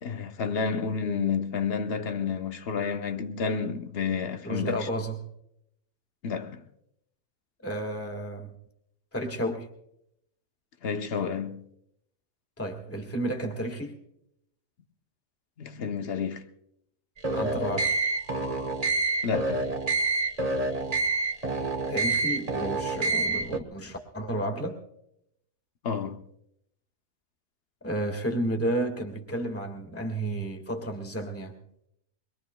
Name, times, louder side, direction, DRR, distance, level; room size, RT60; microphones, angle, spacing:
voice 1, 0.0-4.9 6.2-6.6 10.8-11.7 15.6-16.5 19.2-19.7 25.8-26.2, left 6 dB, 50° left, 1.0 m, -30 dB
voice 2, 4.4-5.3 7.6-8.5 9.1-9.7 12.6-14.0 17.3-18.0 21.9-24.8 27.8-31.6, right 1 dB, 10° left, 1.7 m, -32 dB
sound 1, 17.2-23.6, right 3 dB, 30° right, 1.1 m, -27 dB
24.0 x 22.0 x 2.3 m
omnidirectional pair, 1.5 m